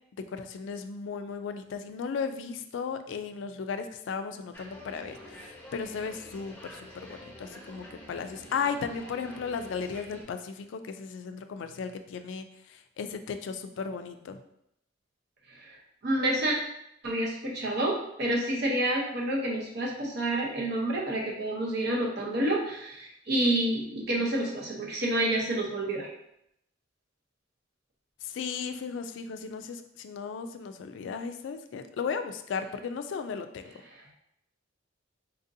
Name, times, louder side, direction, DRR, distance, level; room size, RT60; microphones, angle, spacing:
voice 1, 0.3-14.4 28.2-33.7, left 5 dB, 70° left, 9 dB, 0.3 m, -35 dB
sound 1, 4.5-10.2, equal, 10° left, 0.9 m, -47 dB
voice 2, 16.0-16.5 17.0-26.1, right 1 dB, 60° right, -2 dB, 0.8 m, -28 dB
4.1 x 2.6 x 2.6 m, 0.76 s
head